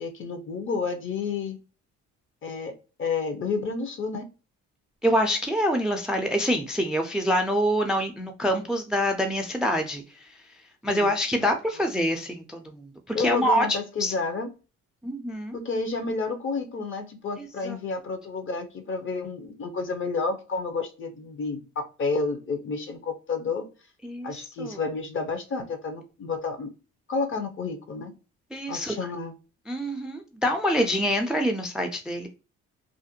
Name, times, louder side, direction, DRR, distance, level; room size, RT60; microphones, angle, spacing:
voice 1, 0.0-1.6 2.4-2.7 3.0-4.2 10.9-11.9 13.1-14.5 15.5-23.7 24.2-26.7 27.1-28.1 28.7-29.3, left 4 dB, 45° left, 0.6 m, -30 dB
voice 2, 5.0-10.4 10.8-13.7 14.0-14.1 15.0-15.6 17.4-17.8 24.0-24.8 28.5-28.9 29.7-32.3, equal, ahead, 0.3 m, -26 dB
2.5 x 2.1 x 2.6 m
cardioid pair, 90°, 30 cm